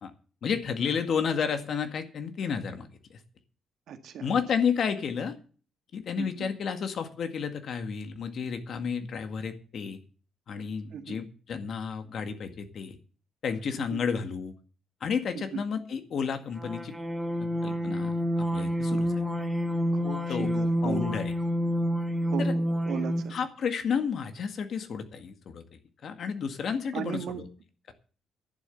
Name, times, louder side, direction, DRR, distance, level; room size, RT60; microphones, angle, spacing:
voice 1, 0.4-3.2 4.2-5.4 5.9-10.0 10.5-13.0 13.4-14.5 15.0-16.9 17.4-18.1 18.5-19.1 20.3-20.5 20.8-21.3 22.4-22.5 23.3-25.6 26.0-27.5, left 6 dB, 55° left, 8 dB, 1.9 m, -31 dB
voice 2, 3.9-4.3 6.2-6.5 10.9-11.2 13.9-14.0 15.3-15.6 19.9-21.2 22.3-23.4 26.9-27.4, right 7 dB, 70° right, 7 dB, 1.7 m, -36 dB
sound 1, 16.6-23.4, equal, 10° right, 2.6 m, -28 dB
11.0 x 7.4 x 9.1 m, 0.39 s
cardioid pair, 120°, 0 cm